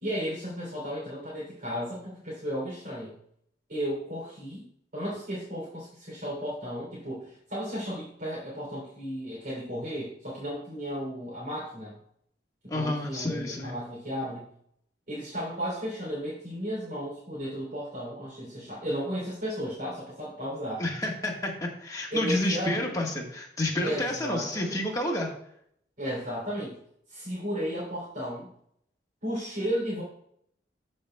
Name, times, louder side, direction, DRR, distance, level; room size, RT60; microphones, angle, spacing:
voice 1, 0.0-3.1 3.7-12.0 12.7-14.5 15.1-20.8 22.1-22.9 23.8-24.8 26.0-26.8 27.1-28.5 29.2-30.0, equal, 55° right, -7 dB, 3.2 m, -34 dB
voice 2, 12.7-13.8 20.8-25.3, left 1 dB, 20° left, -1 dB, 1.5 m, -30 dB
13.5 x 5.4 x 2.3 m, 0.70 s
head